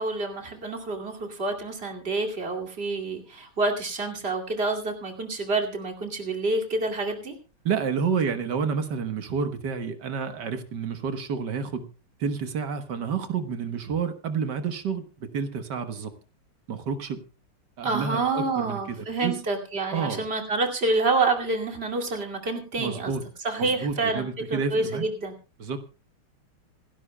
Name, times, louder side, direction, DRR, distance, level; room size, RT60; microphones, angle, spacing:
voice 1, 0.0-7.3 17.8-23.2 23.4-25.3, right 3 dB, 30° right, 2 dB, 2.6 m, -28 dB
voice 2, 7.6-11.8 12.2-16.1 16.7-17.2 17.8-19.3 19.9-20.3 22.8-23.2 23.6-25.0 25.6-25.8, right 6 dB, 55° right, 9 dB, 1.7 m, -29 dB
27.0 x 12.0 x 2.2 m, 0.34 s
omnidirectional pair, 2.4 m